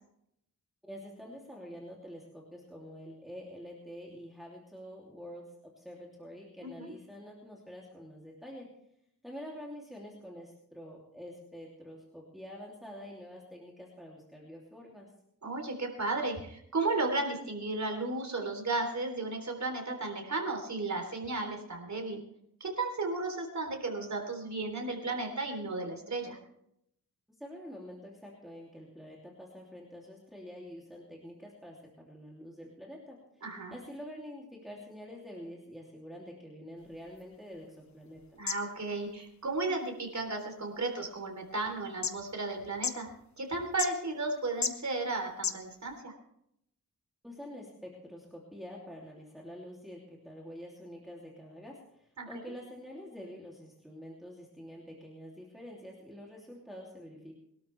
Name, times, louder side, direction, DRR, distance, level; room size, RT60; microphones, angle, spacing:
voice 1, 0.8-8.7 9.2-15.1 27.4-31.8 32.0-33.4 33.7-38.2 47.2-57.3, equal, ahead, -3 dB, 3.0 m, -47 dB
voice 2, 6.6-6.9 15.4-22.2 22.6-26.4 33.4-33.7 38.3-43.1 43.4-46.1 52.2-52.3, right 3 dB, 55° right, 3 dB, 3.7 m, -34 dB
sound 1, 36.8-46.0, left 6 dB, 55° left, 1.1 m, -41 dB
23.0 x 12.5 x 3.4 m, 0.75 s
wide cardioid pair, 100°, 34 cm